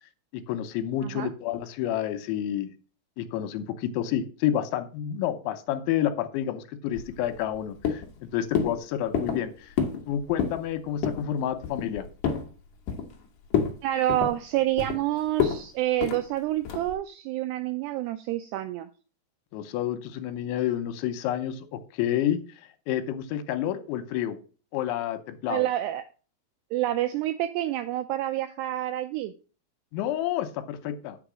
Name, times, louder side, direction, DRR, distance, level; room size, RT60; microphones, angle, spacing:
voice 1, 0.3-2.7 3.2-8.0 8.3-9.7 10.1-12.1 19.5-22.4 22.9-24.4 24.7-25.7 29.9-31.2, left 11 dB, 85° left, 9 dB, 3.2 m, -29 dB
sound 1, 6.9-7.6 7.8-8.2 8.6-8.8 9.1-9.4 9.8-10.0 10.3-10.6 11.0-11.3 11.6-12.5 12.9-13.2 13.5-13.8 14.1-15.0 15.4-15.6 16.0-16.2 16.7-16.9, left 7 dB, 65° left, 2.2 m, -28 dB
voice 2, 13.8-18.9 25.5-26.1 26.7-29.3, right 14 dB, 85° right, 10 dB, 2.4 m, -28 dB
8.9 x 4.7 x 6.1 m, 0.37 s
omnidirectional pair, 5.3 m